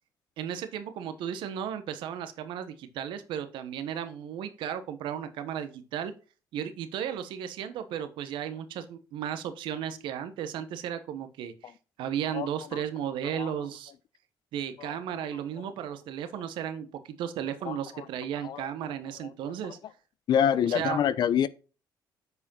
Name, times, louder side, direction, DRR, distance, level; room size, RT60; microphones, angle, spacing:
voice 1, 0.4-6.1 6.5-11.7 12.0-13.9 14.5-19.8 20.6-21.0, right 9 dB, 80° right, 1.2 m, -35 dB
voice 2, 17.7-18.0 18.4-18.6 20.3-21.5, left 9 dB, 60° left, 0.7 m, -26 dB
8.1 x 5.0 x 5.6 m
cardioid pair, 90°, 8 cm